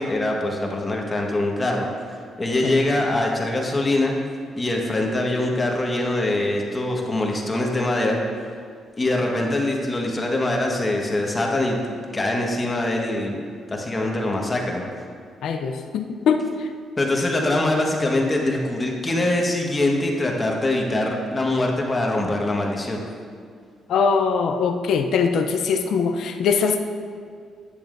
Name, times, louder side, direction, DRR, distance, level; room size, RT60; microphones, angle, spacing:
voice 1, 0.0-4.1 4.5-8.2 9.0-11.8 12.1-13.4 13.7-14.9 17.0-23.0, left 2 dB, 25° left, 0 dB, 1.4 m, -23 dB
voice 2, 15.4-16.7 23.9-26.8, left 5 dB, 75° left, 6 dB, 0.5 m, -22 dB
10.5 x 10.0 x 2.6 m, 2.1 s
cardioid pair, 90°, 0 cm